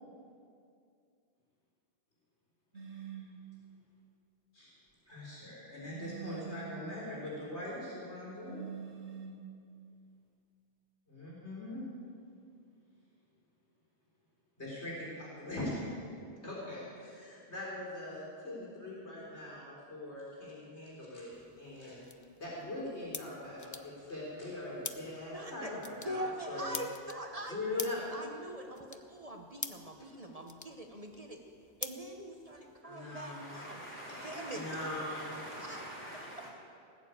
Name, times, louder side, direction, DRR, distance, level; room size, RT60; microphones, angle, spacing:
sound 1, 2.7-3.4 5.9-6.8 8.4-9.5, right 7 dB, 85° right, 1.9 m, -45 dB
voice 1, 5.1-8.6 11.1-11.9 14.6-16.1 16.4-22.0 22.4-26.8 27.5-28.4 32.8-33.6 34.5-35.4, left 1 dB, 90° left, 4.4 m, -41 dB
sound 2, 21.3-32.8, left 3 dB, 25° left, 0.4 m, -48 dB
voice 2, 25.3-25.8 26.0-31.4 31.8-33.8 34.2-34.6 35.6-35.8, right 1 dB, 35° right, 1.0 m, -43 dB
voice 3, 32.8-36.5, equal, 10° left, 3.9 m, -45 dB
18.5 x 7.3 x 8.4 m
omnidirectional pair, 1.1 m